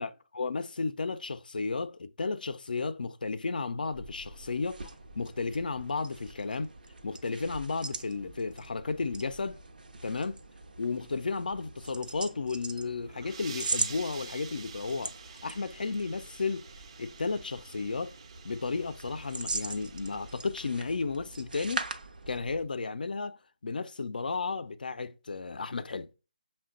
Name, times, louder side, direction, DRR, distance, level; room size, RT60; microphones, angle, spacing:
voice 1, 0.4-6.7 7.0-9.6 10.0-10.4 10.8-16.7 17.0-18.2 18.4-21.9 22.3-26.1, left 4 dB, 75° left, 0.4 m, -33 dB
sound 1, 3.8-22.7, right 3 dB, 75° right, 0.7 m, -41 dB
sound 2, 12.9-20.4, right 6 dB, 40° right, 0.4 m, -48 dB
5.6 x 2.2 x 3.7 m
figure-of-eight pair, 155°, 5 cm